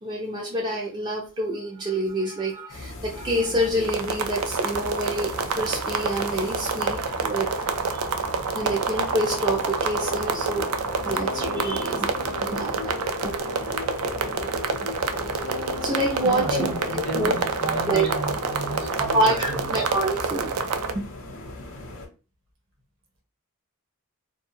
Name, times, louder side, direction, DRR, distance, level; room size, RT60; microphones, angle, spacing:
voice 1, 0.0-7.5 7.9-8.1 8.5-10.7 11.0-12.2 12.5-12.9 13.2-13.4 15.8-16.7 16.9-17.4 17.6-18.1 19.0-20.6 20.9-21.0, right 1 dB, 20° right, -3 dB, 0.4 m, -27 dB
sound 1, 2.7-22.1, left 2 dB, 60° left, 0.7 m, -39 dB
sound 2, 3.8-20.9, right 5 dB, 85° right, 0.4 m, -28 dB
sound 3, 9.5-19.3, left 6 dB, 90° left, 0.3 m, -36 dB
voice 2, 16.2-19.8, right 2 dB, 60° right, 1 dB, 1.0 m, -34 dB
2.4 x 2.3 x 3.0 m, 0.33 s
head